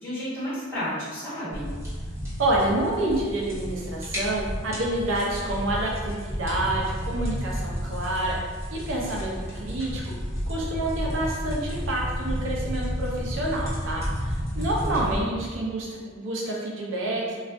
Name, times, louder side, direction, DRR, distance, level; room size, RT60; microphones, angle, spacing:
voice 1, 0.0-1.7 14.5-15.1, equal, 10° left, -13 dB, 1.3 m, -32 dB
sound 1, 1.5-15.2, equal, 15° right, 1.0 m, -32 dB
voice 2, 2.4-8.4 8.7-10.1 10.5-17.4, right 1 dB, 80° right, -3 dB, 0.5 m, -28 dB
2.4 x 2.4 x 3.4 m, 1.5 s
head